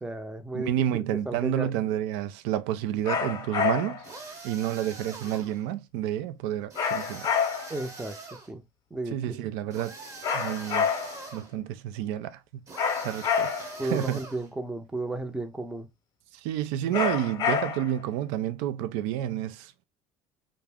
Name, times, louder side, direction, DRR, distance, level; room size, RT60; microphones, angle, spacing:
voice 1, 0.0-0.7 1.3-1.7 7.7-8.2 8.5-8.6 8.9-9.4 13.8-15.9, right 2 dB, 10° right, 0.6 m, -33 dB
voice 2, 0.5-4.0 4.4-7.3 9.1-9.9 10.3-10.9 11.3-12.4 13.0-13.5 13.8-14.2 16.4-19.7, right 11 dB, 75° right, 0.4 m, -29 dB
sound 1, 3.0-4.1 6.7-7.8 10.2-11.3 12.8-13.8 16.9-18.0, left 6 dB, 45° left, 0.7 m, -28 dB
sound 2, 4.0-5.6 6.7-8.5 9.7-11.5 12.7-14.5, right 3 dB, 35° right, 0.9 m, -43 dB
2.4 x 2.0 x 3.4 m
supercardioid pair, 100°, 10 cm